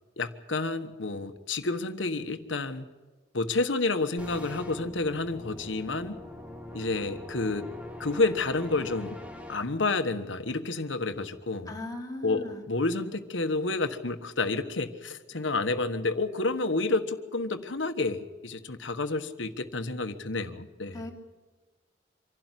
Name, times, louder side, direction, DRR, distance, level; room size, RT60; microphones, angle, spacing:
voice 1, 0.2-2.9 3.3-6.2 6.7-7.7 8.0-9.2 9.5-11.7 12.2-21.0, left 3 dB, 75° left, 9 dB, 1.4 m, -30 dB
sound 1, 4.2-9.6, left 1 dB, 5° right, 1.5 m, -42 dB
voice 2, 11.7-12.6 20.9-21.1, left 2 dB, 20° left, 0 dB, 2.8 m, -38 dB
26.0 x 12.0 x 9.7 m, 1.2 s
head